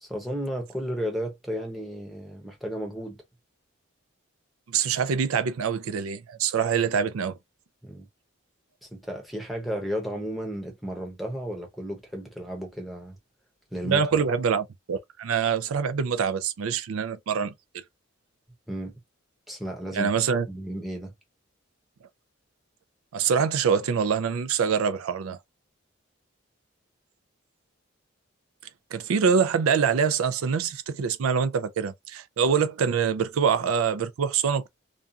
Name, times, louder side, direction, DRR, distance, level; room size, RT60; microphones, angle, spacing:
voice 1, 0.0-3.2 7.8-8.1 8.8-13.2 13.7-14.2 18.7-18.9 19.5-20.1 20.5-21.1, equal, ahead, 0.7 m, -33 dB
voice 2, 4.7-7.4 13.8-17.8 19.9-20.5 23.1-25.4 28.9-34.7, right 6 dB, 90° right, 0.4 m, -25 dB
2.5 x 2.3 x 2.6 m
head